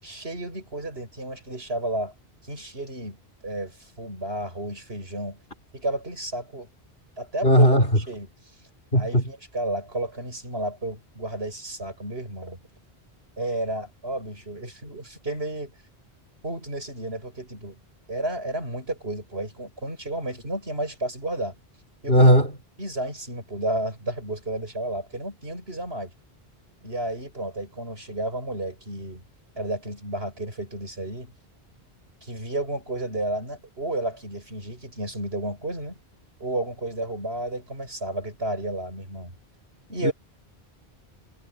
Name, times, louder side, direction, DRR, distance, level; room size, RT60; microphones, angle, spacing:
voice 1, 0.0-2.1 2.4-3.2 3.4-5.4 5.7-6.7 7.2-7.7 8.0-8.3 8.9-12.6 13.4-15.7 16.4-17.8 18.1-21.5 22.0-22.3 22.8-26.1 26.8-29.2 29.6-31.3 32.2-36.0 36.4-39.3 39.9-40.1, right 1 dB, 75° right, 8.2 m, -32 dB
voice 2, 7.4-7.8 8.9-9.2 22.1-22.5 40.0-40.1, equal, 65° left, 5.1 m, -16 dB
omnidirectional pair, 1.1 m